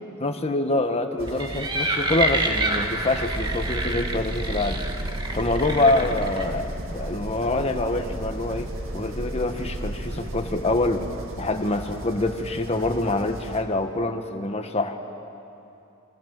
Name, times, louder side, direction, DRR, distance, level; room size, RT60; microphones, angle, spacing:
voice 1, 0.2-4.8 5.3-11.1 11.4-15.0, left 2 dB, 30° left, 5 dB, 1.6 m, -25 dB
sound 1, 1.2-13.6, right 1 dB, 65° right, 2.3 m, -39 dB
sound 2, 1.3-6.4, right 2 dB, 20° right, 1.7 m, -28 dB
sound 3, 2.7-11.8, right 1 dB, 40° right, 1.5 m, -35 dB
28.0 x 25.5 x 7.8 m, 2.8 s
head